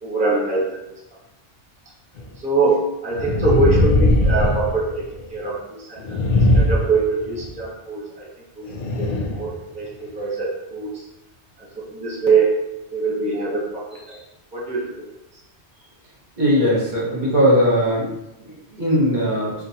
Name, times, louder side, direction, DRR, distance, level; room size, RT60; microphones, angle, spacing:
voice 1, 0.0-1.0 2.4-6.2 6.5-8.3 8.6-8.7 9.0-11.1 11.6-12.6 12.9-14.2 14.5-15.1 15.3-15.4, right 3 dB, 5° right, -4 dB, 0.8 m, -23 dB
sound 1, 2.2-2.3 3.1-5.3 6.0-7.5 8.7-9.5 10.0-10.1, left 1 dB, 55° left, 0.6 m, -19 dB
voice 2, 16.4-18.1 18.8-19.5, equal, 45° right, -5 dB, 1.0 m, -18 dB
5.8 x 2.4 x 2.7 m, 0.92 s
omnidirectional pair, 1.2 m